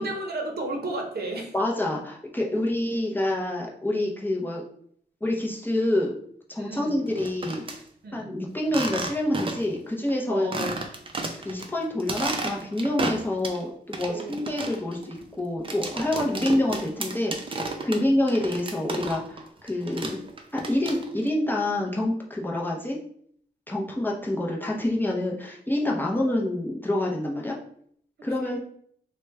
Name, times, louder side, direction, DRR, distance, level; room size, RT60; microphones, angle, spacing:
voice 1, 0.0-1.5 2.5-2.6 6.6-7.0 8.0-8.4 10.3-10.6 14.0-14.4 16.1-16.4 17.9-18.1 26.0-26.3 28.4-28.6, right 2 dB, 65° right, 2 dB, 0.7 m, -34 dB
voice 2, 1.5-4.6 5.2-6.2 6.5-7.6 8.1-10.7 11.4-17.6 17.8-20.2 20.5-23.0 23.7-27.6 28.2-28.6, left 1 dB, 10° left, -2 dB, 0.6 m, -27 dB
sound 1, 7.1-7.8 8.7-9.8 10.1-10.2 10.5-11.7 12.0-13.6 13.9-19.4 19.7-21.3, right 3 dB, 30° right, 0.5 m, -32 dB
3.0 x 2.2 x 3.3 m, 0.63 s
cardioid pair, 85°, 18 cm